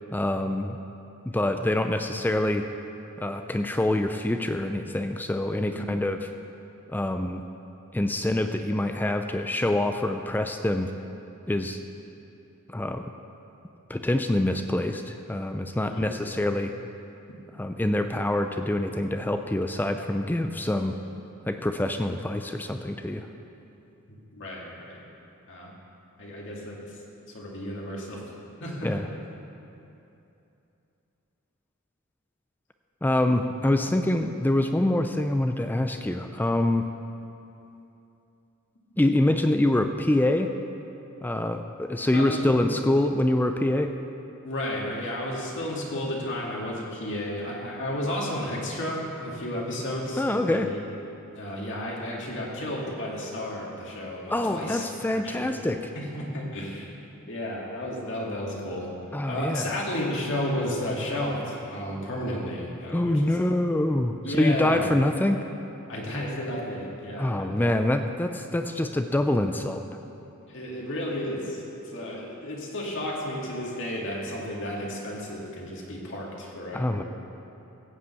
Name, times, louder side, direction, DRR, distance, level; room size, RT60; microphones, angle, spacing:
voice 1, 0.1-0.8 1.3-2.7 3.2-6.2 6.9-7.4 7.9-10.9 11.5-11.8 12.7-13.0 13.9-16.7 17.6-20.9 21.5-23.3 28.8-29.1 33.0-36.9 39.0-40.5 41.2-43.9 50.2-50.7 54.3-55.9 59.1-59.7 62.9-65.4 67.2-69.8 76.7-77.0, left 1 dB, 10° left, 6 dB, 0.3 m, -25 dB
voice 2, 15.8-16.2 24.3-25.0 25.5-25.7 26.2-26.8 27.3-28.3 28.6-29.2 42.1-42.6 44.4-50.8 51.3-55.5 55.9-56.9 57.3-58.9 59.3-63.4 64.2-64.9 65.9-67.8 70.5-77.0, left 1 dB, 60° left, -3 dB, 2.3 m, -32 dB
15.5 x 5.3 x 8.2 m, 2.8 s
head